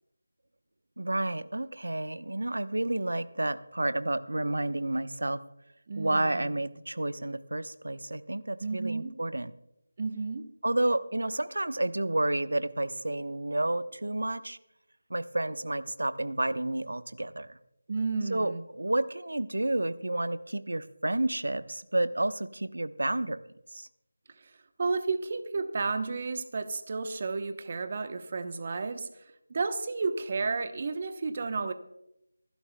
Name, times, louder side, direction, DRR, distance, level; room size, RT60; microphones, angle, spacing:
voice 1, 1.0-5.4 6.0-9.5 10.6-14.6 15.1-17.5 18.3-23.4 23.7-23.9, right 1 dB, 70° right, 12 dB, 0.9 m, -30 dB
voice 2, 5.9-6.5 8.6-9.2 10.0-10.5 17.9-18.6 24.4-24.5 24.8-29.2 29.5-31.7, right 4 dB, 35° right, 9 dB, 0.9 m, -32 dB
25.5 x 11.5 x 2.2 m, 0.84 s
figure-of-eight pair, 165°, 0 cm